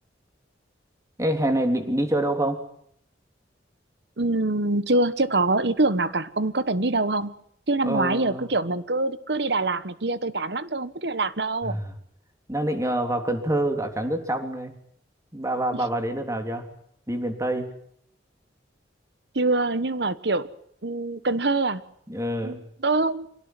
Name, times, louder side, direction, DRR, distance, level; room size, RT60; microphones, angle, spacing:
voice 1, 1.2-2.6 7.8-8.5 11.6-11.9 12.5-14.7 15.3-16.6 17.1-17.7 22.1-22.6, right 1 dB, 15° right, 3.4 m, -26 dB
voice 2, 4.2-7.3 7.7-11.8 15.7-15.8 19.3-20.5 20.8-21.8 22.4-23.3, right 2 dB, 65° right, 1.3 m, -24 dB
26.0 x 17.5 x 9.7 m
head